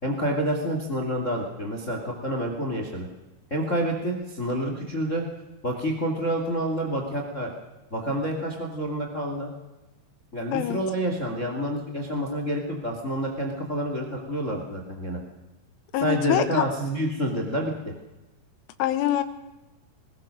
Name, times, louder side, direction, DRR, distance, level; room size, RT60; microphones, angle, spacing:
voice 1, 0.0-3.1 3.5-5.2 5.6-7.5 7.9-9.5 10.3-15.2 16.0-17.9, equal, 30° left, 2 dB, 1.5 m, -28 dB
voice 2, 15.9-16.6 18.8-19.2, left 12 dB, 85° left, 10 dB, 3.7 m, -24 dB
21.0 x 19.5 x 6.5 m, 1.0 s
omnidirectional pair, 5.5 m